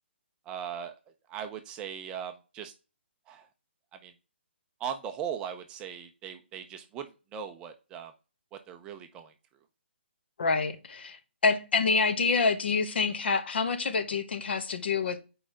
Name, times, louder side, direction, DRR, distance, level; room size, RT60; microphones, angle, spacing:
voice 1, 0.5-0.9 1.3-2.7 3.3-3.5 4.0-4.1 4.8-8.1 8.5-9.3, right 8 dB, 15° right, 0.5 m, -39 dB
voice 2, 10.4-11.2 11.4-15.2, left 4 dB, 60° left, 1.2 m, -27 dB
6.3 x 4.8 x 5.0 m
hypercardioid pair, 165°, 6 cm